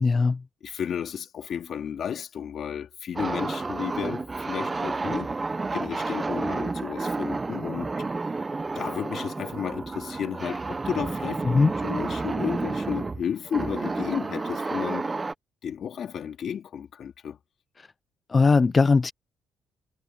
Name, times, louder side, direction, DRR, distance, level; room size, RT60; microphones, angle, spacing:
voice 1, 0.0-0.4 11.5-11.7 18.3-19.1, left 4 dB, 30° left, 0.6 m, -19 dB
voice 2, 0.6-5.3 5.7-7.9 8.2-8.3 8.7-11.4 11.8-15.1 15.6-17.4, left 8 dB, 60° left, 2.9 m, -33 dB
sound 1, 3.2-15.3, right 3 dB, 25° right, 0.9 m, -30 dB
cardioid pair, 90°, 0 cm